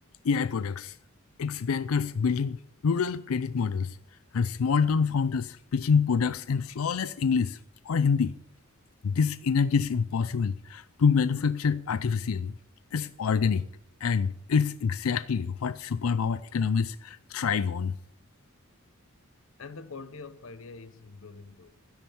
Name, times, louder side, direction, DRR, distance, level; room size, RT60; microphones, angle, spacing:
voice 1, 0.2-1.0 1.4-2.6 2.8-4.0 4.3-7.6 7.9-8.4 9.0-12.5 12.9-13.7 14.0-17.9, left 5 dB, 90° left, 0.5 m, -26 dB
voice 2, 19.6-21.8, left 4 dB, 70° left, 0.9 m, -44 dB
12.5 x 10.5 x 7.1 m
head